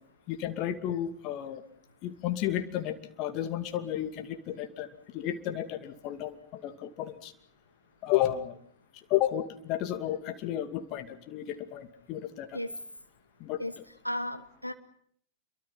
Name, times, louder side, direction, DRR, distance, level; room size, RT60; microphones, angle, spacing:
voice 1, 0.3-1.6 2.0-4.9 5.1-7.3 8.0-8.6 9.1-12.6 13.4-13.6, left 12 dB, 40° left, 8 dB, 2.5 m, -32 dB
voice 2, 14.0-14.7, left 1 dB, 90° left, 10 dB, 1.1 m, -34 dB
28.0 x 23.5 x 5.8 m, 0.65 s
figure-of-eight pair, 90°, 0 cm